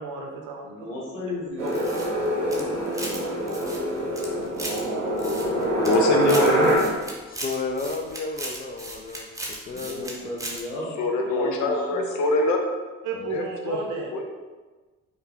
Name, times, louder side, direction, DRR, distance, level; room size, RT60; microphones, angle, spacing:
voice 1, 0.0-0.9 1.6-1.7 13.0-14.2, right 4 dB, 55° right, 1 dB, 0.7 m, -34 dB
voice 2, 0.6-1.8 2.2-2.9 9.7-10.9 11.2-12.2, left 2 dB, 90° left, -6 dB, 0.8 m, -35 dB
sound 1, 1.6-6.8, right 1 dB, 85° right, 0.8 m, -25 dB
sound 2, 1.7-3.2 3.5-4.8 5.2-6.0 6.2-10.1 10.4-10.6, right 1 dB, 10° right, 0.9 m, -36 dB
voice 3, 5.8-7.0 11.0-12.6 13.3-13.8 14.1-14.2, left 2 dB, 50° left, 2 dB, 0.8 m, -24 dB
voice 4, 7.3-10.3 11.0-11.1 13.1-13.4, left 3 dB, 25° left, 4 dB, 0.4 m, -33 dB
5.3 x 2.2 x 3.8 m, 1.3 s
figure-of-eight pair, 40°, 38 cm